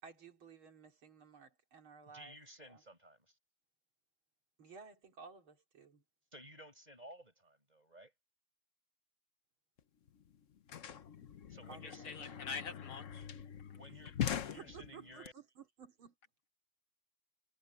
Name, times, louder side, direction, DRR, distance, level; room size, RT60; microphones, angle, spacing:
voice 1, 0.0-2.4 2.6-2.8 4.6-6.0 11.6-12.4 13.9-14.0 14.6-16.1, right 6 dB, 75° right, 4.0 m, -55 dB
voice 2, 2.1-3.2 6.3-8.1 11.5-12.1 13.7-15.3, equal, 20° right, 5.9 m, -55 dB
sound 1, 9.8-9.9 10.1-15.3, left 9 dB, 50° left, 1.0 m, -42 dB
voice 3, 11.8-13.3, left 5 dB, 90° left, 3.3 m, -45 dB
omnidirectional pair, 2.3 m